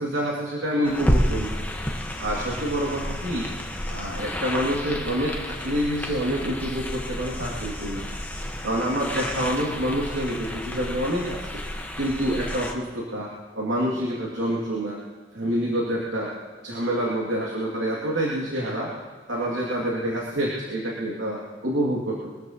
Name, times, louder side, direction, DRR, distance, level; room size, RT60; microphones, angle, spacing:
voice 1, 0.0-1.5 2.2-3.5 3.9-8.1 8.6-11.6 12.0-15.0 15.3-16.3 16.6-18.9 19.3-22.3, equal, 90° right, -4 dB, 2.7 m, -27 dB
sound 1, 0.8-12.7, equal, 10° left, 1.4 m, -30 dB
23.0 x 13.5 x 3.1 m, 1.5 s
head